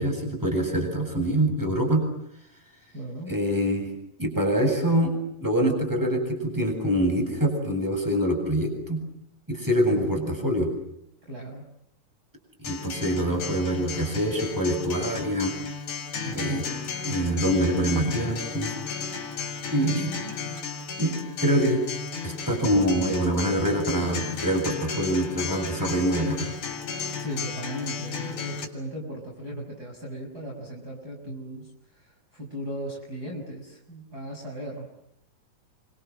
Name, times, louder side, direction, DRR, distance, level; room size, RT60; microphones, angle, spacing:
voice 1, 0.0-2.0 3.3-3.9 4.2-5.1 5.4-9.0 9.5-10.7 12.6-15.5 16.2-16.7 17.0-18.7 19.7-20.1 21.0-21.8 22.2-26.5, equal, 5° right, 4 dB, 7.7 m, -25 dB
voice 2, 2.9-3.3 9.8-10.5 11.3-11.7 19.7-20.4 27.2-34.9, equal, 25° right, -2 dB, 6.8 m, -37 dB
Acoustic guitar, 12.6-28.7, left 5 dB, 60° left, 5.4 m, -34 dB
29.0 x 26.0 x 7.7 m, 0.75 s
omnidirectional pair, 4.1 m